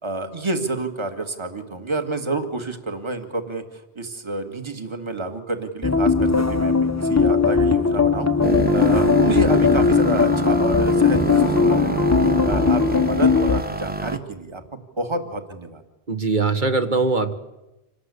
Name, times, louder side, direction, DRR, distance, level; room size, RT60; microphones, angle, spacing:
voice 1, 0.0-15.8, right 2 dB, 25° right, 7 dB, 1.8 m, -29 dB
sound 1, 5.8-13.6, left 4 dB, 15° left, 0.7 m, -19 dB
sound 2, 8.4-14.2, equal, 10° right, 1.0 m, -26 dB
voice 2, 16.1-17.3, right 3 dB, 45° right, 8 dB, 1.7 m, -21 dB
27.0 x 19.0 x 8.3 m, 0.99 s
omnidirectional pair, 1.1 m